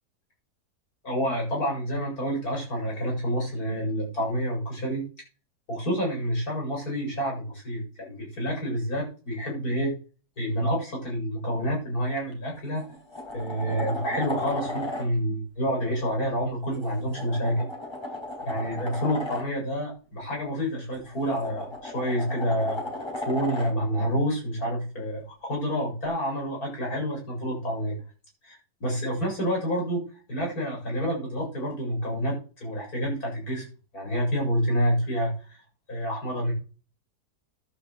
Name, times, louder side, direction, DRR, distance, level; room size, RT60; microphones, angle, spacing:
voice 1, 1.0-5.0 5.7-9.9 10.4-12.8 13.3-17.7 18.4-22.8 23.2-28.0 28.4-30.0 30.3-33.6 33.9-35.6 35.9-36.5, equal, 60° left, -1 dB, 8.1 m, -28 dB
sound 1, 12.2-12.3 12.8-15.0 16.7-19.4 20.9-23.7 26.0-26.1, left 2 dB, 15° left, 4.8 m, -35 dB
11.5 x 7.9 x 7.8 m, 0.36 s
omnidirectional pair, 1.8 m